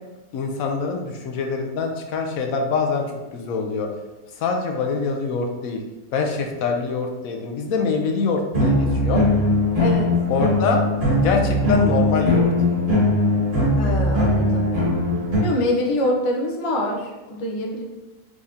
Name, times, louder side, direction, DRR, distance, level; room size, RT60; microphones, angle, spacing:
voice 1, 0.3-3.1 3.3-3.9 4.4-5.8 6.1-9.2 10.3-10.8 11.2-13.0, left 4 dB, 70° left, 3 dB, 1.0 m, -24 dB
sound 1, 8.5-15.4, left 1 dB, 35° right, 1.5 m, -20 dB
voice 2, 9.8-10.1 13.8-14.7 15.4-17.8, left 1 dB, 55° left, -1 dB, 0.3 m, -24 dB
4.8 x 3.5 x 2.7 m, 1.1 s
omnidirectional pair, 1.6 m